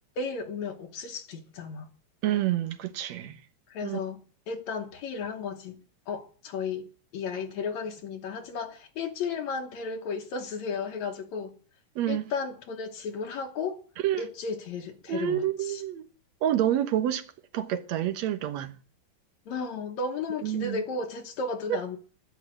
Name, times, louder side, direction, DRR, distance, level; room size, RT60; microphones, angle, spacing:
voice 1, 0.2-1.9 3.7-11.6 12.1-13.8 14.2-15.8 19.5-22.0, left 4 dB, 70° left, 2.4 m, -34 dB
voice 2, 2.2-3.4 3.8-4.0 12.0-12.2 14.0-14.2 15.1-16.1 16.4-17.2 17.5-18.7 20.4-20.8, right 11 dB, 70° right, 2.2 m, -28 dB
12.0 x 10.5 x 7.7 m
omnidirectional pair, 3.5 m